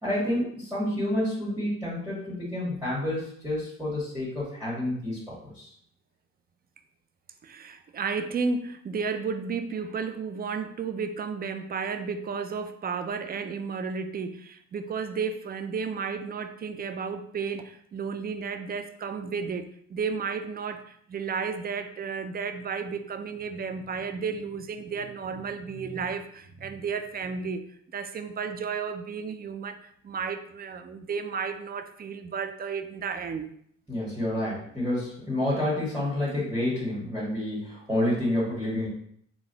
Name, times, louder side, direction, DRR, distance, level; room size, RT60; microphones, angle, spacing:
voice 1, 0.0-5.7 33.9-38.9, left 1 dB, 5° right, -9 dB, 1.6 m, -29 dB
voice 2, 7.4-27.6 27.9-33.5, right 5 dB, 30° right, 8 dB, 0.4 m, -33 dB
4.0 x 2.3 x 3.9 m, 0.66 s
cardioid pair, 90°, 30 cm